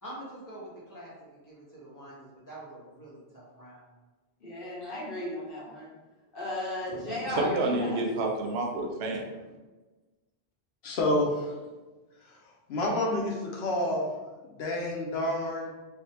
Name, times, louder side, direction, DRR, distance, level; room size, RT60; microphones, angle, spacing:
voice 1, 0.0-3.8, right 1 dB, 20° left, -7 dB, 1.0 m, -46 dB
voice 2, 4.4-5.9 6.3-8.0, left 1 dB, 60° left, -5 dB, 1.1 m, -35 dB
voice 3, 6.9-9.2, right 2 dB, 85° right, 1 dB, 0.9 m, -30 dB
voice 4, 10.8-11.5 12.7-14.1 14.6-15.7, left 1 dB, 85° left, 0 dB, 0.9 m, -28 dB
3.4 x 2.4 x 2.8 m, 1.2 s
omnidirectional pair, 1.0 m